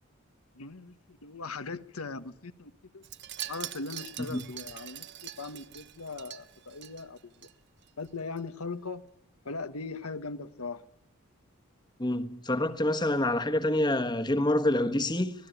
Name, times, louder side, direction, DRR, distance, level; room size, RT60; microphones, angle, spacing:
voice 1, 0.5-3.0 3.5-7.5 8.0-9.0 9.4-10.9, left 3 dB, 90° left, 1.3 m, -39 dB
Wind chime, 3.0-7.5 7.8-8.1 8.4-8.5, right 12 dB, 50° right, 1.1 m, -43 dB
voice 2, 12.0-15.3, left 1 dB, 20° left, 1.3 m, -27 dB
25.0 x 18.0 x 9.3 m
head